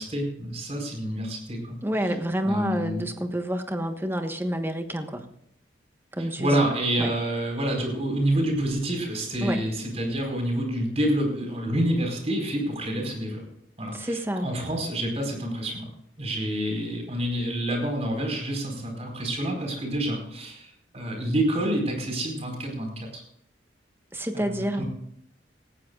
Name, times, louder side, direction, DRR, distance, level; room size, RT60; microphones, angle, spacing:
voice 1, 0.0-1.8 2.4-3.1 6.4-13.4 13.8-15.9 16.2-20.7 20.9-23.2 24.3-24.8, right 1 dB, 35° right, 2 dB, 4.7 m, -28 dB
voice 2, 1.8-5.3 6.1-6.6 7.0-7.1 9.4-9.6 13.9-14.5 24.1-24.8, equal, 10° right, 6 dB, 1.3 m, -28 dB
19.0 x 15.5 x 2.5 m, 0.73 s
head